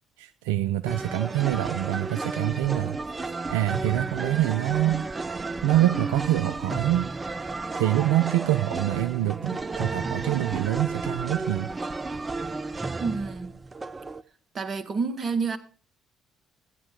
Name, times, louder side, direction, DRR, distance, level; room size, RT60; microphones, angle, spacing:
voice 1, 0.2-5.1 5.6-7.1 7.7-11.7, right 14 dB, 80° right, 0.4 m, -26 dB
sound 1, 0.9-14.2, right 3 dB, 30° right, 0.8 m, -32 dB
voice 2, 13.0-13.6 14.5-15.6, right 4 dB, 45° right, 1.6 m, -28 dB
15.5 x 9.7 x 3.6 m
hypercardioid pair, 50°, 0 cm